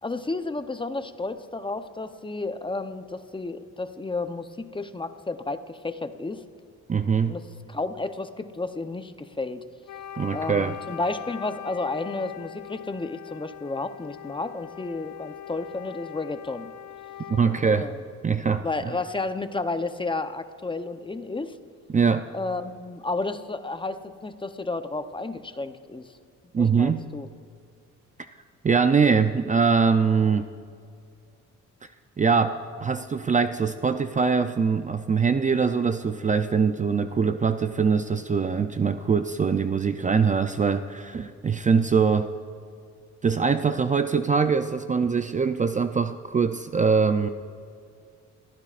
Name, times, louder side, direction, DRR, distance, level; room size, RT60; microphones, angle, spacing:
voice 1, 0.0-6.4 7.3-9.6 10.3-16.7 17.6-18.0 18.6-21.5 22.3-26.1 26.6-27.3, left 3 dB, 15° left, 9 dB, 0.8 m, -32 dB
voice 2, 6.9-7.4 10.2-10.8 17.3-17.9 18.2-18.9 21.9-22.3 26.5-27.0 28.6-30.5 32.2-42.3 43.2-47.3, right 5 dB, 25° right, 9 dB, 0.5 m, -23 dB
Wind instrument woodwind instrument, 9.8-17.9, left 11 dB, 85° left, 0.6 m, -41 dB
28.5 x 15.0 x 2.5 m, 2.3 s
cardioid pair, 90°, 30 cm